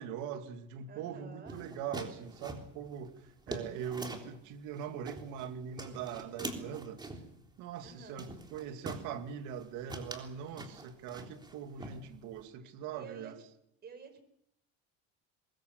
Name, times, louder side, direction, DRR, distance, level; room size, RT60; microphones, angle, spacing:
voice 1, 0.0-7.0 7.6-13.4, right 8 dB, 75° right, 2.6 m, -42 dB
voice 2, 0.9-1.7 7.8-8.3 12.6-13.4 13.8-14.2, right 5 dB, 30° right, 5.0 m, -52 dB
sound 1, 1.5-4.4 4.8-5.5 5.8-7.3 7.8-7.9 8.2-9.1 9.5-9.6 9.9-11.5 11.8-12.4, right 2 dB, 15° right, 3.5 m, -44 dB
23.0 x 21.5 x 6.7 m
cardioid pair, 130°, 31 cm